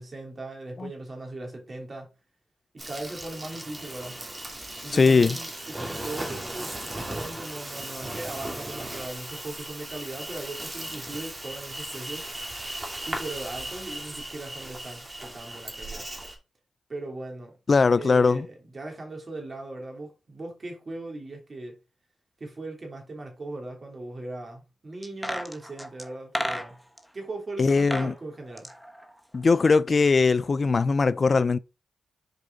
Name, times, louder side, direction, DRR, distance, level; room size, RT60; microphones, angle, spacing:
voice 1, 0.0-2.1 2.7-4.2 4.8-12.3 13.0-16.1 16.9-17.5 18.0-21.8 22.4-26.8 27.1-28.7, right 2 dB, 45° right, 3.1 m, -39 dB
Insect, 2.8-16.4, right 1 dB, 25° right, 2.6 m, -37 dB
voice 2, 4.9-5.4 17.7-18.5 27.6-28.1 29.3-31.6, left 4 dB, 45° left, 0.3 m, -20 dB
sound 1, 25.0-27.0 27.7-28.1 28.4-29.8 30.1-30.2, equal, ahead, 1.3 m, -33 dB
6.6 x 4.9 x 3.9 m
supercardioid pair, 45°, 0 cm